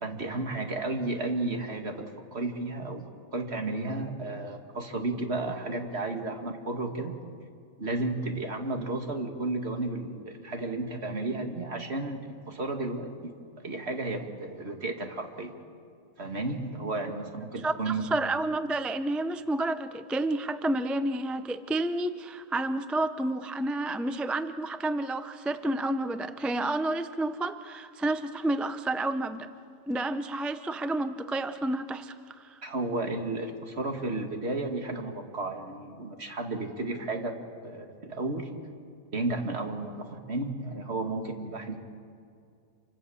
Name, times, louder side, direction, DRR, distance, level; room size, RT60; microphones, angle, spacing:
voice 1, 0.0-2.0 2.3-7.1 7.8-13.3 13.6-15.5 16.2-18.0 32.6-38.5 39.1-41.8, right 2 dB, 45° right, 4 dB, 2.4 m, -33 dB
voice 2, 17.6-29.5 29.9-32.6, right 2 dB, ahead, 10 dB, 0.4 m, -30 dB
28.0 x 25.0 x 7.1 m, 2.4 s
omnidirectional pair, 1.6 m